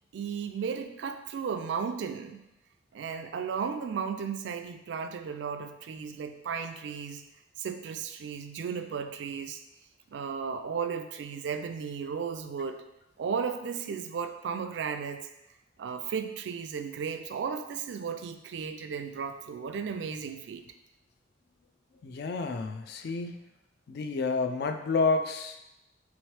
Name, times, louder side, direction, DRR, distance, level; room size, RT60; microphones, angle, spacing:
voice 1, 0.1-2.4 2.9-7.2 7.6-9.6 10.1-12.8 13.2-15.2 15.8-20.6, right 6 dB, 70° right, 8 dB, 0.3 m, -35 dB
voice 2, 22.0-23.5 23.9-25.6, left 4 dB, 55° left, 6 dB, 0.3 m, -29 dB
3.5 x 3.0 x 3.1 m, 0.89 s
head